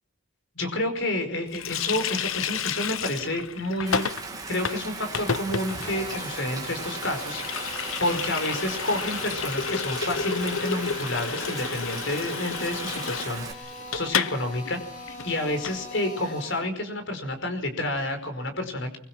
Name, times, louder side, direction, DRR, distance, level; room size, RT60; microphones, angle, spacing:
voice 1, 0.6-4.1 4.5-7.4 8.0-19.0, left 1 dB, 60° left, 7 dB, 5.2 m, -29 dB
Water tap faucet, 1.5-14.4 14.6-14.8 15.1-15.8, left 6 dB, 75° left, 1.0 m, -32 dB
Rain, 3.9-13.5, right 4 dB, 15° right, 2.5 m, -38 dB
Drill, 5.7-16.7, left 1 dB, 35° left, 6.8 m, -41 dB
25.5 x 24.5 x 6.2 m, 0.67 s
head